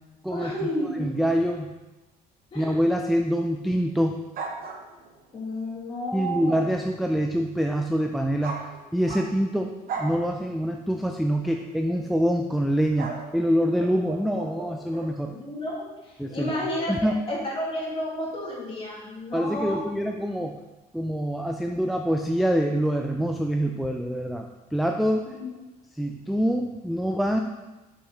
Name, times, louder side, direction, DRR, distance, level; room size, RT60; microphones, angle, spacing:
voice 1, 0.3-1.3 2.5-2.8 5.3-6.8 15.2-19.8 25.3-25.6, left 1 dB, 35° left, -4 dB, 2.0 m, -32 dB
voice 2, 1.0-1.7 2.6-4.2 6.1-8.6 8.9-15.3 16.2-16.6 16.9-17.1 19.3-20.6 20.9-25.3 26.0-27.4, equal, ahead, 3 dB, 0.3 m, -25 dB
sound 1, 4.3-5.2 8.4-9.5 9.9-10.2 11.4-11.7 13.0-15.2, right 4 dB, 60° right, 1.0 m, -37 dB
6.4 x 5.6 x 3.1 m, 1.1 s
cardioid pair, 110°, 17 cm